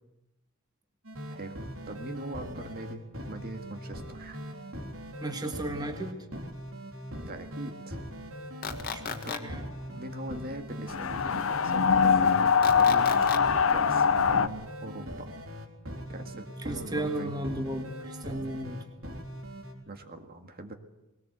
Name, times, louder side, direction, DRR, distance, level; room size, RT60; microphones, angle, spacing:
sound 1, 1.0-19.7, equal, 70° right, 3.8 m, -41 dB
voice 1, 1.9-4.4 7.2-8.0 9.2-9.6 9.9-13.4 13.7-15.3 16.1-17.4 19.9-20.7, right 1 dB, 45° right, 6 dB, 1.9 m, -41 dB
voice 2, 5.2-6.2 8.9-9.6 16.6-18.8, right 1 dB, 20° right, 5 dB, 1.7 m, -34 dB
sound 2, 8.6-9.4 12.6-13.4, left 6 dB, 45° left, 1.6 m, -34 dB
sound 3, 10.9-14.5, left 6 dB, 70° left, 0.7 m, -23 dB
21.0 x 18.5 x 8.1 m, 0.97 s
head